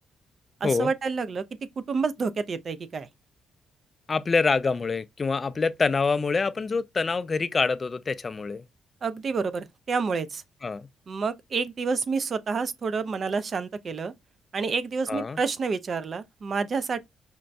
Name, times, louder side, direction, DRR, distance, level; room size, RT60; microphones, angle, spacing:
voice 1, 0.6-1.4 1.9-3.1 9.0-10.4 11.1-14.1 14.5-17.0, right 4 dB, 45° right, 0.4 m, -28 dB
voice 2, 4.1-8.6 10.6-10.9 15.1-15.4, left 4 dB, 35° left, 0.3 m, -26 dB
5.1 x 2.2 x 2.4 m
cardioid pair, 90°, 0 cm